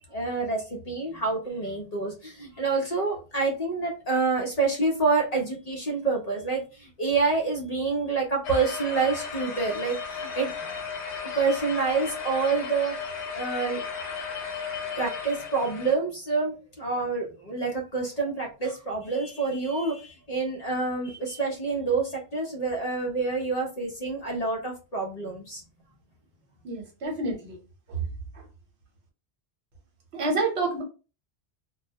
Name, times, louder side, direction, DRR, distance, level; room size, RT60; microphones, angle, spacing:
voice 1, 0.1-10.5 11.4-13.0 13.3-13.8 15.0-25.6, right 4 dB, 45° left, 0 dB, 0.6 m, -27 dB
sound 1, 8.4-15.9, left 5 dB, 90° left, 0.9 m, -35 dB
voice 2, 26.6-27.6 30.1-30.8, right 2 dB, 75° right, 1 dB, 1.1 m, -28 dB
2.2 x 2.0 x 2.7 m, 0.33 s
omnidirectional pair, 1.1 m